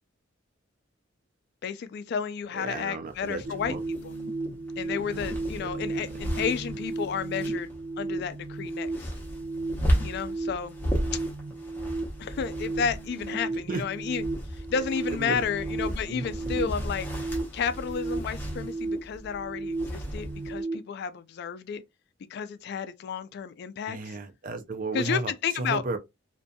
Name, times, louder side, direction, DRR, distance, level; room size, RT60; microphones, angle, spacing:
voice 1, 1.6-3.8 4.0-4.2 4.8-7.7 8.0-9.1 10.0-10.8 12.2-14.2 14.5-17.1 17.5-21.8 22.3-24.2 24.9-25.8, left 6 dB, 55° left, 0.3 m, -32 dB
voice 2, 2.5-3.4 3.7-3.8 5.0-5.2 5.6-5.7 13.7-13.8 15.1-15.4 16.1-16.7 23.9-26.0, right 3 dB, 45° right, 0.5 m, -34 dB
sound 1, 3.1-20.6, equal, 10° left, 0.8 m, -35 dB
sound 2, 3.4-20.7, right 2 dB, 85° right, 0.8 m, -35 dB
2.6 x 2.5 x 2.2 m
head